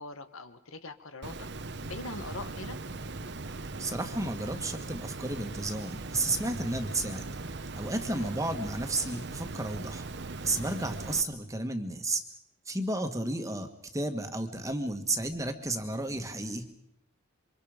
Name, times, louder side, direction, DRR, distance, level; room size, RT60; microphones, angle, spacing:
voice 1, 0.0-1.3 1.8-2.8 8.1-8.3, left 2 dB, 70° left, 9 dB, 1.7 m, -42 dB
Water, 1.2-11.2, right 3 dB, 55° right, 1.0 m, -39 dB
voice 2, 3.8-7.3 7.8-10.1 10.4-12.2 12.6-16.7, right 2 dB, 15° right, 6 dB, 1.7 m, -32 dB
28.0 x 25.5 x 5.2 m, 0.75 s
head